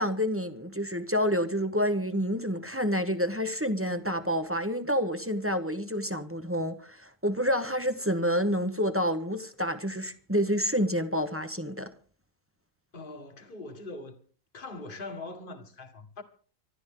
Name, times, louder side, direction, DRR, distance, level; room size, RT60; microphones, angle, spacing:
voice 1, 0.0-11.9, equal, 10° right, 1.0 m, -28 dB
voice 2, 12.9-14.2 14.5-16.2, left 2 dB, 40° left, 1.9 m, -42 dB
24.5 x 12.5 x 3.8 m
omnidirectional pair, 1.4 m